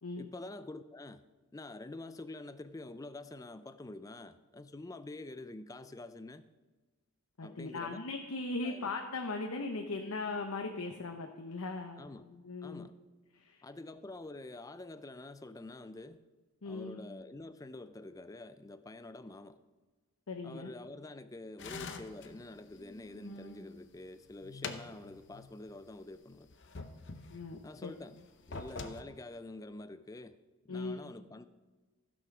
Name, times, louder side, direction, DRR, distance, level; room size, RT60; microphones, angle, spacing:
voice 1, 0.2-1.2 1.5-6.5 7.4-8.0 8.6-8.9 12.0-12.2 12.6-13.0 13.6-16.2 16.6-19.6 20.4-26.5 27.6-28.2 28.5-30.4 30.6-31.5, left 2 dB, 15° left, 0.3 m, -47 dB
voice 2, 7.4-12.0 12.3-12.9 13.3-13.6 16.6-17.0 20.3-20.7 27.3-27.9 30.7-31.1, left 3 dB, 80° left, 0.8 m, -39 dB
sound 1, 21.6-23.7 24.1-25.5 25.8-25.9 26.5-27.7 28.3-29.0, left 4 dB, 55° left, 0.8 m, -45 dB
15.0 x 6.2 x 5.9 m
head